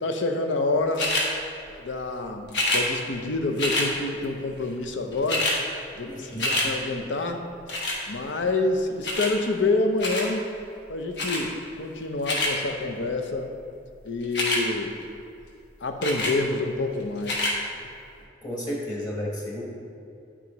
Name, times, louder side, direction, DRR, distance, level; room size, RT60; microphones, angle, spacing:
voice 1, 0.0-1.2 1.7-5.5 6.0-7.4 8.1-10.5 10.9-13.5 14.0-14.9 15.8-17.5, left 2 dB, 85° left, 5 dB, 0.6 m, -27 dB
sound 1, 1.0-1.3 2.5-2.9 3.6-3.9 4.8-4.9 5.1-5.6 6.0-6.7 7.7-8.0 9.0-9.3 10.0-10.3 11.2-11.4 12.0-12.5 14.2-14.6 16.0-16.4 17.2-17.6 18.2-18.3, left 1 dB, 60° left, 1.2 m, -26 dB
voice 2, 6.0-6.5 18.4-19.7, equal, 20° left, -3 dB, 1.3 m, -32 dB
9.5 x 6.1 x 3.1 m, 2.5 s
head